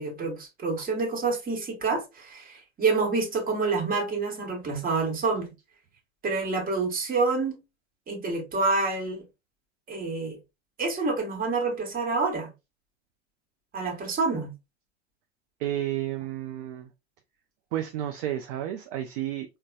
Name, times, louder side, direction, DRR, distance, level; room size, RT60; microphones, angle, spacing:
voice 1, 0.0-5.5 6.2-7.6 8.1-9.2 9.9-10.4 10.8-12.5 13.7-14.5, right 3 dB, 25° right, 1.2 m, -27 dB
voice 2, 15.6-16.9 17.7-19.6, right 12 dB, 50° right, 0.5 m, -31 dB
3.9 x 2.2 x 2.3 m
hypercardioid pair, 90°, 36 cm